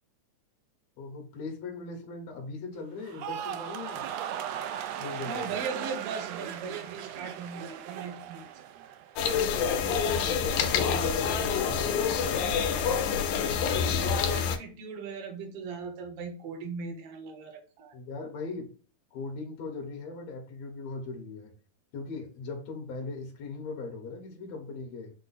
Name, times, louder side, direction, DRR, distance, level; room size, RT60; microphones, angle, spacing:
voice 1, 1.0-4.1 5.0-5.5 10.0-12.5 17.9-18.7 19.1-21.5 21.9-25.1, left 3 dB, 65° left, 2.1 m, -39 dB
sound 1, 3.0-9.3 9.6-10.2, right 10 dB, 90° right, 1.4 m, -38 dB
voice 2, 5.2-8.7 13.7-17.9, right 5 dB, 65° right, 1.6 m, -39 dB
sound 2, 9.2-14.6, left 6 dB, 80° left, 2.1 m, -27 dB
6.2 x 2.1 x 4.0 m
omnidirectional pair, 3.5 m